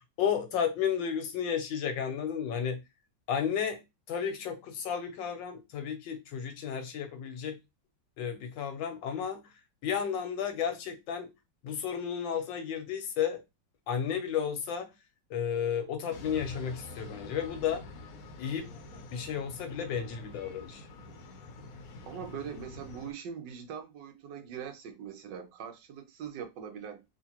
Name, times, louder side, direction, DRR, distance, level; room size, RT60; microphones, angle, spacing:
voice 1, 0.0-2.8 3.3-3.8 4.1-7.6 8.2-9.4 9.8-11.3 11.6-13.4 13.9-14.9 15.3-17.8 18.4-18.7 19.1-20.8, left 8 dB, 85° left, 1.5 m, -32 dB
sound 1, 16.1-23.1, left 3 dB, 60° left, 0.9 m, -47 dB
voice 2, 22.0-27.0, right 7 dB, 75° right, 1.3 m, -42 dB
3.7 x 2.5 x 2.8 m
omnidirectional pair, 2.0 m